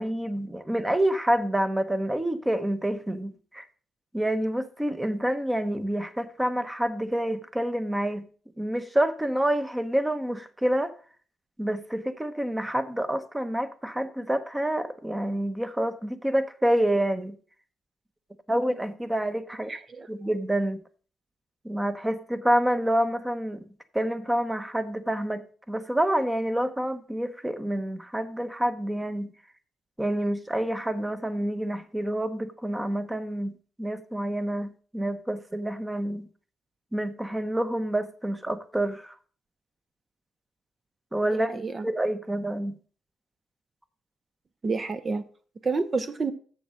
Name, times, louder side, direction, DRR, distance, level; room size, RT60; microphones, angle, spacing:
voice 1, 0.0-3.6 4.1-8.3 8.6-10.9 11.6-17.4 18.5-19.7 20.1-20.8 21.6-23.6 23.9-29.3 30.0-33.5 33.8-36.3 36.9-39.1 41.1-42.8, right 1 dB, 10° right, 1.0 m, -28 dB
voice 2, 19.7-20.1 41.4-41.9 44.6-45.2 45.6-46.3, right 4 dB, 35° right, 0.7 m, -29 dB
7.3 x 6.9 x 6.4 m
cardioid pair, 90°, 0 cm